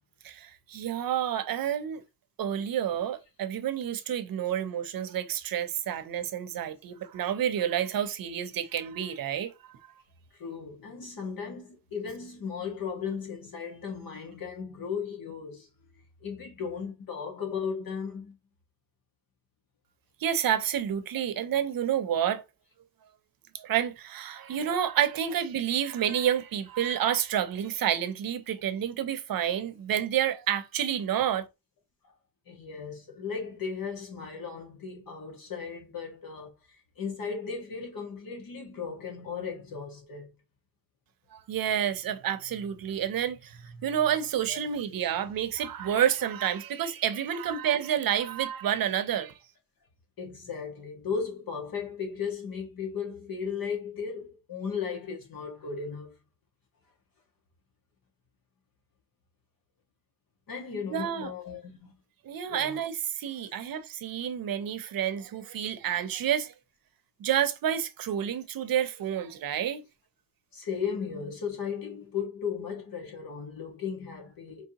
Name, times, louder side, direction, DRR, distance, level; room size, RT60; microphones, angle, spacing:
voice 1, 0.2-2.0 2.4-9.7 20.2-22.4 23.5-31.5 41.3-49.3 60.9-61.3 62.2-66.5 67.2-69.8, right 9 dB, 85° right, 0.7 m, -29 dB
voice 2, 10.3-15.7 16.2-18.4 24.3-24.5 32.0-32.1 32.5-36.5 36.9-40.3 44.5-44.6 50.2-56.2 60.5-61.9 62.5-62.8 63.4-63.5 70.5-74.7, left 6 dB, 80° left, 1.7 m, -36 dB
4.7 x 3.3 x 2.9 m
wide cardioid pair, 155°, 34 cm